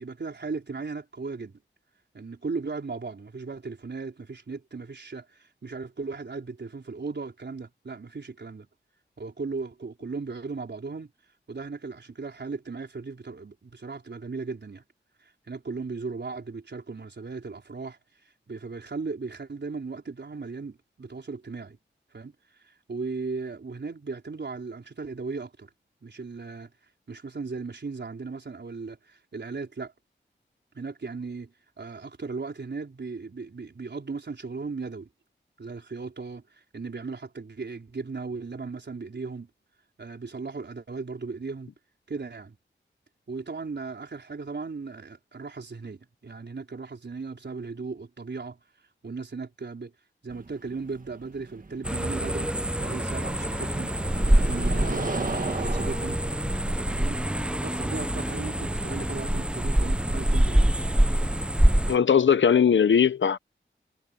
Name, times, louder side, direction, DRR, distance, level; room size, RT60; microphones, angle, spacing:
voice 1, 0.0-1.6 2.1-8.7 9.2-11.1 11.5-14.8 15.2-18.0 18.5-21.8 22.1-22.3 22.6-25.7 26.0-26.7 27.1-29.9 30.7-35.1 35.6-39.5 40.0-41.7 42.1-42.6 43.3-48.6 49.0-49.9 50.2-52.5 52.8-53.9 54.2-56.2 56.7-57.2 57.6-60.9, right 4 dB, 65° right, 4.5 m, -37 dB
sound 1, 50.3-59.1, right 3 dB, 45° right, 1.6 m, -38 dB
sound 2, 51.8-62.0, right 1 dB, 5° right, 0.6 m, -25 dB
voice 2, 61.9-63.4, left 7 dB, 80° left, 0.8 m, -19 dB
wide cardioid pair, 70°, 19 cm